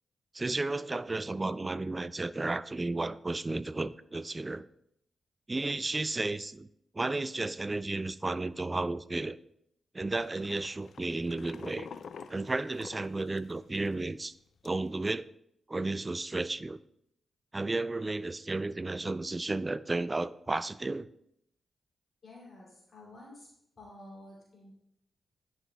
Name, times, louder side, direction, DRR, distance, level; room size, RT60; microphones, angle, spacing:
voice 1, 0.3-4.7 5.5-6.7 6.9-9.4 9.9-11.9 12.3-14.3 14.6-15.3 15.7-16.8 17.5-21.1, right 2 dB, 30° right, 0.3 m, -33 dB
sound 1, 10.1-13.9 14.3-14.4 14.6-15.1, left 6 dB, 70° left, 0.4 m, -48 dB
voice 2, 22.2-23.5 23.8-24.7, left 1 dB, 55° left, 2.8 m, -50 dB
11.0 x 5.6 x 2.3 m
cardioid pair, 55°, 0 cm